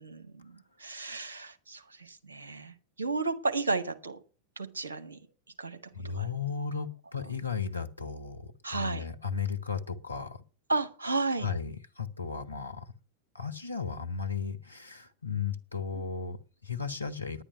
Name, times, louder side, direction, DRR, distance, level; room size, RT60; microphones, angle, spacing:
voice 1, 0.0-4.2 4.6-5.2 5.6-5.8 6.0-6.3 8.6-9.0 10.7-11.5 15.9-16.0, right 3 dB, 75° right, 1.6 m, -33 dB
voice 2, 5.9-10.4 11.4-12.9 13.3-17.4, left 6 dB, 85° left, 1.1 m, -35 dB
10.0 x 9.9 x 6.7 m
figure-of-eight pair, 90°, 0 cm